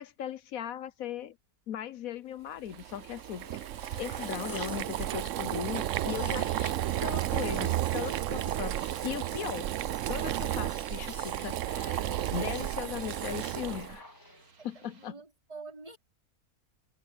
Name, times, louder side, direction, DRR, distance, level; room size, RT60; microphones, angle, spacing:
voice 1, 0.0-1.4 1.7-3.6 4.0-6.7 7.0-9.7 10.1-14.0 14.6-15.1, left 10 dB, 75° left, 1.2 m, -38 dB
Boiling, 2.7-14.0, right 13 dB, 70° right, 0.9 m, -33 dB
sound 1, 2.7-15.1, right 4 dB, 85° right, 2.6 m, -61 dB
sound 2, 3.1-14.6, left 2 dB, 15° left, 0.9 m, -51 dB
voice 2, 14.8-16.0, right 4 dB, 25° right, 3.5 m, -46 dB
omnidirectional pair, 1.5 m